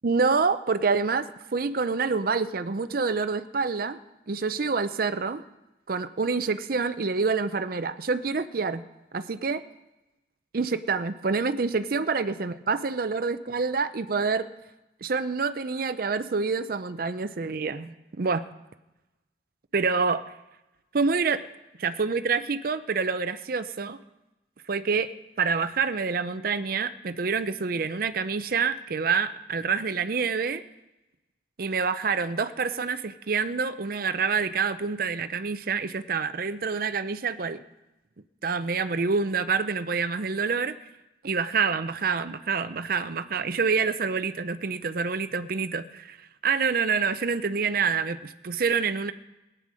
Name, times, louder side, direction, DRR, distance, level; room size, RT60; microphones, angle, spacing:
voice 1, 0.0-4.0 4.3-5.4 5.9-8.8 9.1-9.6 10.5-14.5 15.0-18.4 19.7-20.2 20.9-21.4 21.8-24.0 24.7-25.1 25.4-30.6 31.6-37.6 38.4-40.7 41.2-46.2 46.4-49.1, right 5 dB, 50° right, 11 dB, 0.5 m, -27 dB
17.0 x 9.1 x 6.3 m, 1.0 s
head